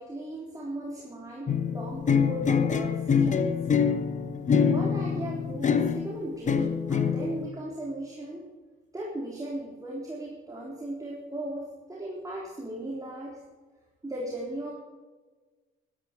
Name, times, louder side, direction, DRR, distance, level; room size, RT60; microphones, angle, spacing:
voice 1, 0.0-3.5 4.6-8.5 8.9-13.4 14.0-14.7, right 1 dB, 15° right, -3 dB, 3.8 m, -37 dB
sound 1, 1.5-6.1 6.5-7.5, left 6 dB, 40° left, 1.1 m, -25 dB
13.5 x 13.0 x 4.9 m, 1.3 s
cardioid pair, 90°, 20 cm